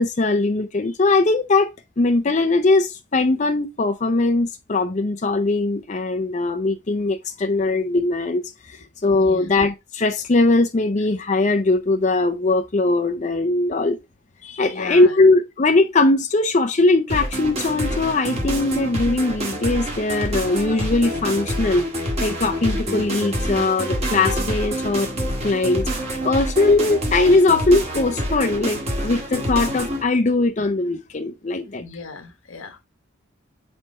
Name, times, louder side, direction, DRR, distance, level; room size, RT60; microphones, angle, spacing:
voice 1, 0.0-1.7 2.0-14.0 14.4-21.8 22.2-25.1 25.4-25.9 26.2-31.9, left 2 dB, 35° left, 0.5 m, -20 dB
voice 2, 9.2-9.5 14.7-15.2 31.8-32.8, left 4 dB, 80° left, 1.2 m, -36 dB
sound 1, 17.1-30.0, equal, 30° right, 1.5 m, -27 dB
4.6 x 4.4 x 5.3 m
head